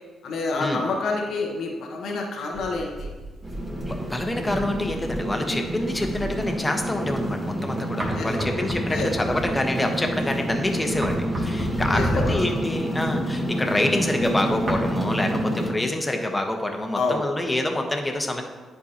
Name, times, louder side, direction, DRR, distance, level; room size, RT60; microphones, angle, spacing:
voice 1, 0.2-3.1 8.1-8.5 8.9-9.1 11.9-12.4 16.9-17.3, left 3 dB, 70° left, 0 dB, 1.0 m, -27 dB
sound 1, 2.5-7.5 7.9-14.8, right 1 dB, 50° right, 2.1 m, -33 dB
sound 2, 3.4-15.7, right 1 dB, 25° right, 2.2 m, -28 dB
voice 2, 3.8-18.4, left 1 dB, 20° left, 4 dB, 1.2 m, -27 dB
10.5 x 4.7 x 2.9 m, 1.3 s
hypercardioid pair, 45°, 0 cm